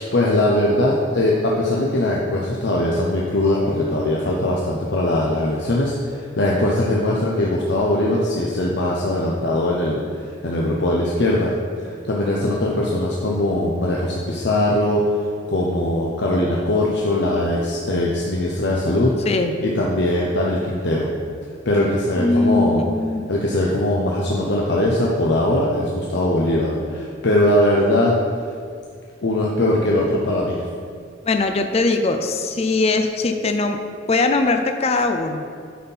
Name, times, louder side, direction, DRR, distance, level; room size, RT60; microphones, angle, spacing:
voice 1, 0.0-11.6 11.8-15.2 15.5-19.1 19.6-21.1 21.7-22.8 23.3-28.1 29.2-30.6, left 1 dB, 65° left, -3 dB, 0.8 m, -20 dB
voice 2, 19.3-19.6 22.1-23.2 31.2-33.8 34.1-35.4, left 3 dB, 35° left, 6 dB, 0.5 m, -20 dB
9.5 x 4.3 x 5.5 m, 2.1 s
head